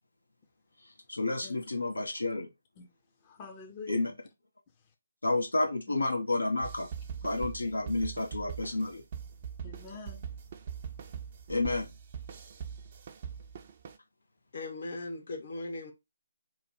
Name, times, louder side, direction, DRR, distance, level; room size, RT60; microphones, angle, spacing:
voice 1, 1.1-2.5 3.9-4.1 5.2-6.9 7.2-9.0 11.5-11.9, left 2 dB, 80° left, 1.1 m, -30 dB
voice 2, 3.2-4.2 7.2-7.3 9.6-10.3, left 4 dB, 25° left, 0.7 m, -46 dB
sound 1, 6.6-14.0, right 7 dB, 40° right, 0.5 m, -42 dB
voice 3, 14.5-15.9, left 2 dB, 55° left, 1.3 m, -38 dB
3.1 x 2.2 x 4.3 m
figure-of-eight pair, 145°, 0 cm